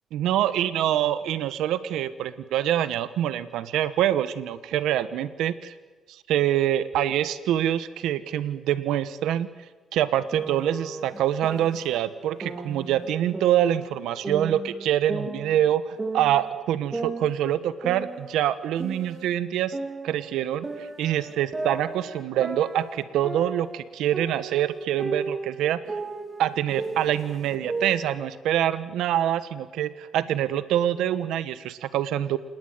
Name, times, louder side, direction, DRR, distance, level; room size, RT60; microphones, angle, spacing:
voice 1, 0.1-5.7 6.1-9.5 9.9-19.8 20.0-25.8 26.4-32.4, right 11 dB, 85° right, 14 dB, 1.2 m, -25 dB
sound 1, 10.3-12.0 12.4-14.0 14.2-16.5 16.9-19.4 19.7-23.8 24.1-28.1, right 3 dB, 30° right, 3.7 m, -35 dB
27.5 x 20.0 x 9.5 m, 1.2 s
cardioid pair, 90°, 0 cm